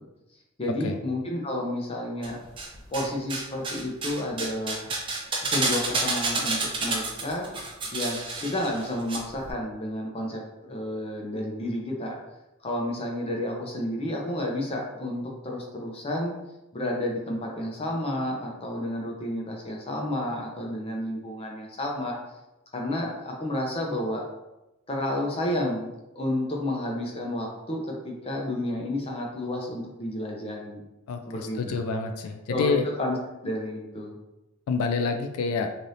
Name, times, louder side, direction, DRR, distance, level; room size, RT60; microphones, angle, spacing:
voice 1, 0.6-2.4 2.9-4.9 5.4-7.5 7.9-12.2 12.6-16.4 16.7-22.2 22.7-24.2 24.9-25.9 26.2-30.8 31.3-31.8 32.5-33.2 33.4-34.1, left 1 dB, 25° left, -1 dB, 0.5 m, -31 dB
sound 1, 2.2-3.0 3.3-9.2 9.4-9.5, right 3 dB, 25° right, 0.4 m, -29 dB
voice 2, 31.1-32.9 34.7-35.8, left 4 dB, 85° left, 6 dB, 0.3 m, -28 dB
3.3 x 2.5 x 2.6 m, 0.97 s
head